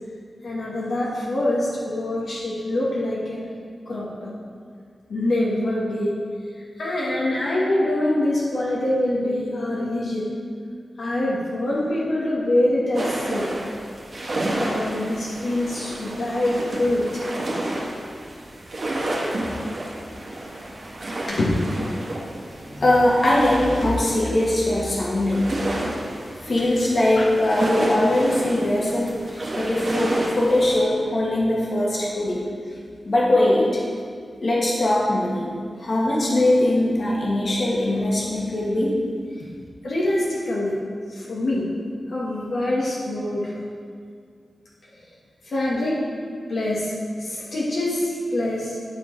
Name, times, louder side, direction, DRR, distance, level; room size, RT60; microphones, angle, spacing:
voice 1, 0.4-3.4 3.8-4.3 5.1-6.1 6.8-10.3 11.0-13.5 14.4-17.3 19.5-19.6 21.2-21.7 39.8-40.8 41.1-41.7 42.1-43.5 45.4-46.0 46.5-46.9 47.2-48.8, left 1 dB, 75° left, -6 dB, 1.6 m, -24 dB
sound 1, 12.9-30.8, right 1 dB, 55° right, 1.5 m, -30 dB
voice 2, 22.7-25.5 26.4-32.4 33.1-33.7 34.4-38.9, left 1 dB, 50° left, -5 dB, 1.8 m, -21 dB
10.5 x 4.6 x 4.6 m, 2.1 s
wide cardioid pair, 80°, 0 cm